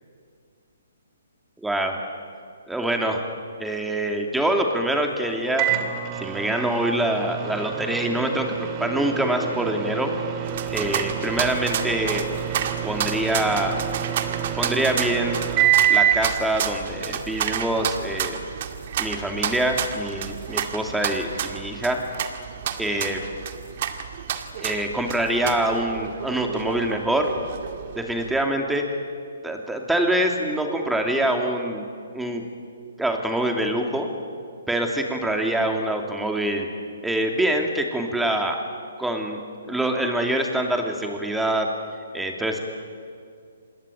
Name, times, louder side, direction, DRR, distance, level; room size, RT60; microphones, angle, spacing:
voice 1, 1.6-2.0 2.7-3.2 3.6-5.7 6.2-10.1 10.7-12.3 12.8-13.8 14.5-15.4 15.9-18.4 19.0-22.0 22.8-23.2 24.6-27.3 28.0-28.9 29.4-31.8 32.1-32.4 33.0-34.1 34.7-36.7 37.0-38.6 39.0-39.4 39.7-41.7 42.1-42.6, right 1 dB, 5° right, 3 dB, 2.8 m, -25 dB
Microwave oven, 5.6-16.3, right 10 dB, 30° right, 2.5 m, -26 dB
sound 1, 10.4-28.4, right 8 dB, 50° right, 2.1 m, -31 dB
26.5 x 20.5 x 9.3 m, 2.2 s
hypercardioid pair, 140°, 0 cm